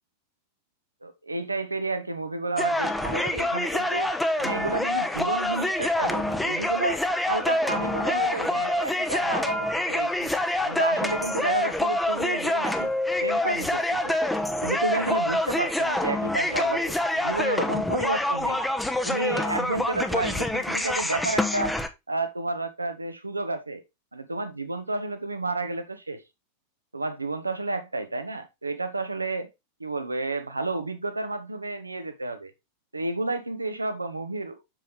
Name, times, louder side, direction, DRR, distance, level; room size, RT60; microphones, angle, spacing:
voice 1, 1.0-4.1 4.4-7.0 7.3-10.3 10.7-12.9 13.2-14.2 14.6-18.6 19.0-21.7 22.1-23.8 24.1-26.2 26.9-29.5 29.8-32.5 32.9-34.6, right 2 dB, 80° right, 1.3 m, -31 dB
sound 1, 2.6-21.9, left 1 dB, 5° left, 1.0 m, -26 dB
7.5 x 7.2 x 3.2 m
figure-of-eight pair, 90°, 0 cm